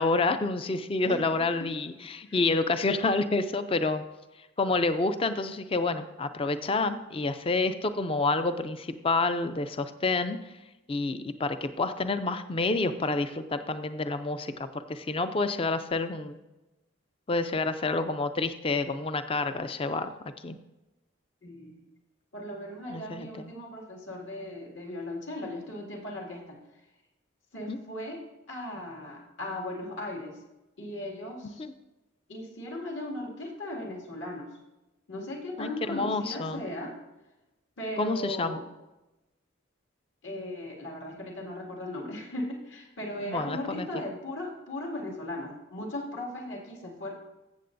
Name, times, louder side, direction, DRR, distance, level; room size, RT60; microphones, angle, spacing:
voice 1, 0.0-4.0 4.6-10.4 10.9-16.4 17.3-20.6 22.9-23.5 27.7-27.8 31.6-31.7 35.6-36.6 38.0-38.6 43.2-43.9, left 3 dB, 25° left, 10 dB, 0.4 m, -28 dB
voice 2, 21.4-21.8 22.3-26.6 27.5-28.2 28.5-30.4 30.8-31.6 32.3-34.5 35.1-37.0 37.8-38.6 40.2-47.1, left 1 dB, 70° left, -1 dB, 2.2 m, -37 dB
14.5 x 7.5 x 2.6 m, 1.0 s
head